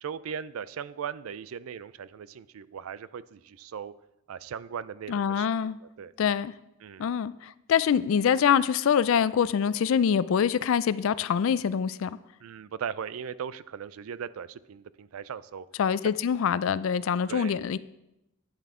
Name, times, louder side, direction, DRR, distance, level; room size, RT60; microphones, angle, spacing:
voice 1, 0.0-3.9 4.3-5.5 5.8-6.1 6.8-7.1 12.4-15.7 17.3-17.5, right 7 dB, 80° right, 0.4 m, -38 dB
voice 2, 5.1-5.8 6.2-6.5 7.0-12.2 15.8-17.8, left 7 dB, 65° left, 0.3 m, -25 dB
9.8 x 9.0 x 3.6 m
head